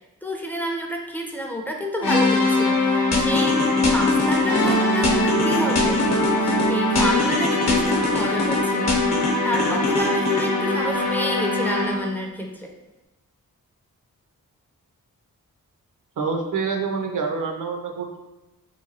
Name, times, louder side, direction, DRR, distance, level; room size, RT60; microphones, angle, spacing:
voice 1, 0.2-6.1 6.4-9.0 9.4-12.7, left 1 dB, 5° left, 0 dB, 0.4 m, -29 dB
sound 1, 2.0-12.1, left 2 dB, 80° left, 0.7 m, -22 dB
sound 2, 3.1-4.7 5.0-6.7 7.0-8.6 8.9-10.5, left 3 dB, 45° left, 0.8 m, -24 dB
voice 2, 16.2-18.2, right 5 dB, 60° right, 2 dB, 0.6 m, -26 dB
2.9 x 2.2 x 2.7 m, 1.0 s
cardioid pair, 50°, 36 cm